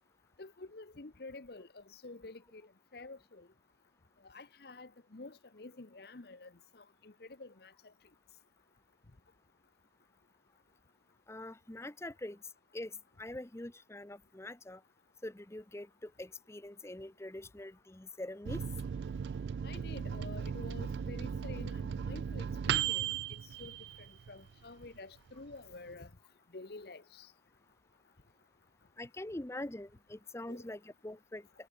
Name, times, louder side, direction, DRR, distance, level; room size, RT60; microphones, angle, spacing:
voice 1, 0.4-2.6 2.9-3.5 4.2-7.7 19.6-23.8 24.3-26.1 26.5-27.3 30.5-30.6, left 3 dB, 55° left, 1.0 m, -49 dB
voice 2, 11.3-12.4 12.7-14.8 15.2-18.7 29.0-31.5, left 1 dB, 15° left, 0.7 m, -44 dB
Microwave oven, 18.5-24.5 24.9-25.0 25.3-25.9, right 8 dB, 65° right, 0.3 m, -37 dB
head